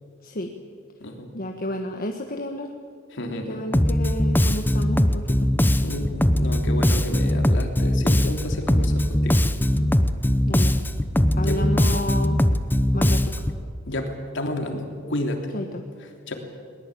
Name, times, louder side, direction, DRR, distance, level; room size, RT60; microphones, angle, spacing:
voice 1, 1.3-2.7 3.4-5.5 10.5-10.7 11.2-12.4 12.9-13.3 15.5-15.8, left 1 dB, 45° left, 3 dB, 1.4 m, -31 dB
voice 2, 3.1-3.6 5.8-9.4 11.4-11.6 13.9-15.4 16.3-16.4, left 1 dB, 65° left, 3 dB, 3.3 m, -30 dB
Bass guitar, 3.7-13.6, left 1 dB, 10° left, 0.8 m, -21 dB
21.5 x 20.0 x 8.6 m, 2.2 s
head